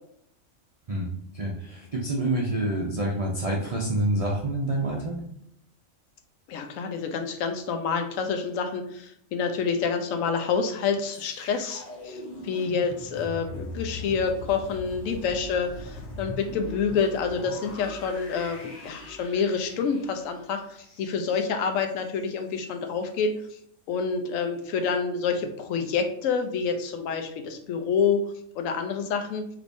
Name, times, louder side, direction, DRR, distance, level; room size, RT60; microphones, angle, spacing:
voice 1, 1.3-5.1, right 1 dB, 60° right, -3 dB, 0.3 m, -27 dB
voice 2, 6.5-23.6 23.9-29.5, left 5 dB, 90° left, 6 dB, 1.0 m, -28 dB
sound 1, 11.1-22.2 22.6-22.8, left 2 dB, 65° left, 1.4 m, -41 dB
3.4 x 3.0 x 2.5 m, 0.72 s
omnidirectional pair, 1.3 m